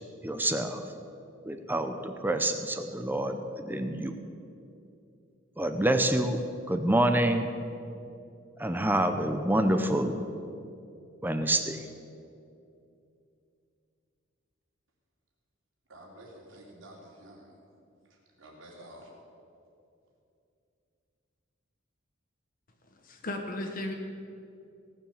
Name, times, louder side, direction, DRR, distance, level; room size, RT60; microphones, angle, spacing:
voice 1, 0.2-0.8 1.5-4.1 5.6-6.4 6.7-7.5 8.6-10.1 11.2-11.8, right 1 dB, 10° right, 7 dB, 0.6 m, -27 dB
voice 2, 15.9-17.5 18.1-19.1, right 1 dB, 75° right, -1 dB, 2.9 m, -50 dB
voice 3, 22.9-23.9, left 1 dB, 45° left, 3 dB, 1.2 m, -35 dB
17.5 x 7.3 x 7.1 m, 2.6 s
head